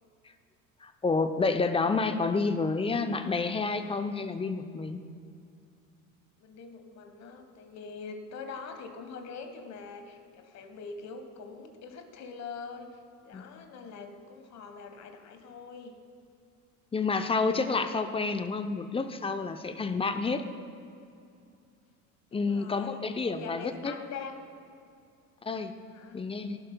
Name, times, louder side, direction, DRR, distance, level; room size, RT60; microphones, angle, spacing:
voice 1, 0.8-5.0 13.3-13.4 16.9-20.4 22.3-23.9 25.4-25.7 26.1-26.6, left 4 dB, 15° left, 9 dB, 0.6 m, -29 dB
voice 2, 6.4-16.0 20.1-20.5 22.3-24.5 25.9-26.3, left 5 dB, 40° left, 7 dB, 1.3 m, -44 dB
17.5 x 11.0 x 2.2 m, 2.5 s
hypercardioid pair, 70°, 43 cm